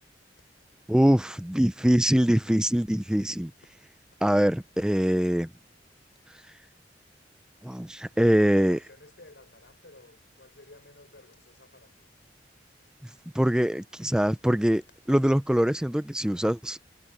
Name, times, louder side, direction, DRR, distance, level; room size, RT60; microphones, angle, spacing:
voice 1, 0.9-3.5 4.2-5.5 7.6-8.8 13.0-14.8 15.1-16.8, equal, 5° right, 0.4 m, -23 dB
voice 2, 8.4-12.1, left 2 dB, 70° left, 4.2 m, -53 dB
head